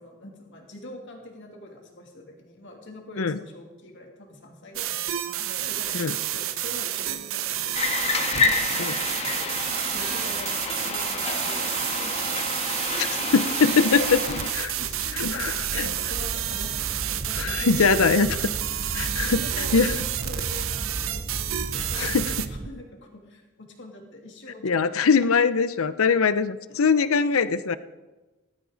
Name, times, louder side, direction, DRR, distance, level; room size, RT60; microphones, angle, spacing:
voice 1, 0.0-12.6 13.1-13.5 14.5-18.5 19.0-21.3 21.7-25.1 26.7-27.1, left 1 dB, 60° left, 1 dB, 2.8 m, -44 dB
sound 1, 4.8-22.5, right 12 dB, 65° right, 0.8 m, -30 dB
sound 2, 7.7-14.5, left 4 dB, 30° left, 1.5 m, -29 dB
voice 2, 13.0-14.8 15.1-15.9 17.4-18.3 18.9-19.9 21.9-22.2 24.6-27.8, left 5 dB, 75° left, 14 dB, 0.7 m, -22 dB
sound 3, 13.5-22.7, right 2 dB, 30° right, 0.6 m, -35 dB
18.5 x 14.0 x 4.0 m, 1.2 s
head